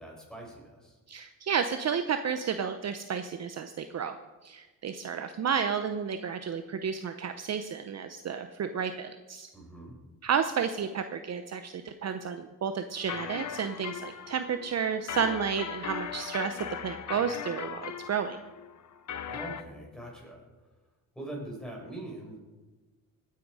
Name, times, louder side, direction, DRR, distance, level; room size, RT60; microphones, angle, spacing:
voice 1, 0.0-1.0 9.5-10.0 19.3-20.4 21.2-22.4, right 1 dB, ahead, -2 dB, 5.6 m, -42 dB
voice 2, 1.1-4.2 4.4-9.5 10.2-18.4, right 7 dB, 45° right, 8 dB, 0.8 m, -31 dB
sound 1, 12.9-19.6, left 8 dB, 50° left, 0.9 m, -39 dB
18.0 x 9.4 x 4.9 m, 1.2 s
cardioid pair, 90°, 36 cm